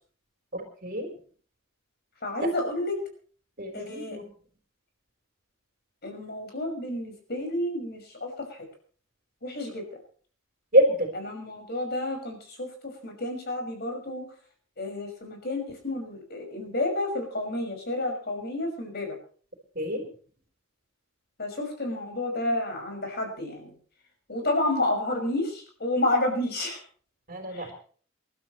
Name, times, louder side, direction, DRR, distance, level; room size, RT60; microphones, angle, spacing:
voice 1, 0.5-1.1 3.6-4.3 10.7-11.1 19.8-20.0 27.3-27.7, equal, 45° right, 4 dB, 4.1 m, -25 dB
voice 2, 2.2-3.0 3.7-4.2 6.0-8.7 9.4-9.9 11.1-14.3 14.8-19.2 21.4-23.7 24.3-26.8 27.5-27.7, left 1 dB, 50° left, 3 dB, 5.9 m, -30 dB
28.0 x 12.5 x 3.2 m, 0.43 s
head